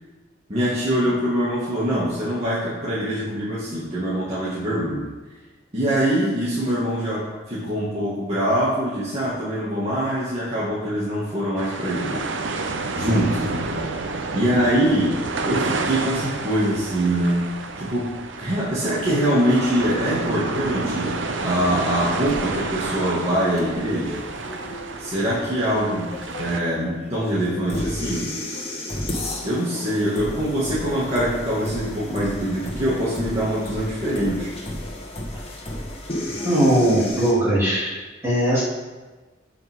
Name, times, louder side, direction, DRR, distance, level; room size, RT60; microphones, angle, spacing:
voice 1, 0.5-5.1 5.7-12.3 12.5-12.6 12.9-13.7 14.3-17.5 17.8-24.2 25.0-26.1 26.4-28.2 29.4-34.5, equal, 35° right, -10 dB, 2.2 m, -23 dB
sound 1, 11.6-26.6, right 3 dB, 75° right, 0.8 m, -30 dB
sound 2, 22.3-37.3, left 1 dB, 30° left, 1.7 m, -33 dB
voice 2, 36.4-38.0 38.2-38.6, right 1 dB, 15° right, -11 dB, 3.2 m, -19 dB
14.5 x 5.8 x 3.8 m, 1.2 s
head